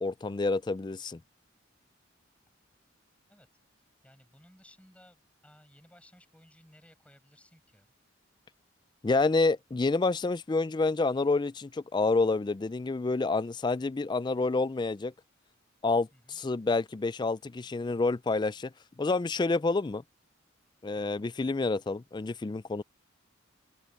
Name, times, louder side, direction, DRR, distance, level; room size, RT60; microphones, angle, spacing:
voice 1, 0.0-1.2 9.0-15.1 15.8-18.7 19.0-20.0 20.8-22.8, left 3 dB, 20° left, 0.3 m, -28 dB
voice 2, 4.0-7.9 16.1-16.4, left 1 dB, 5° left, 7.5 m, -59 dB
open air
head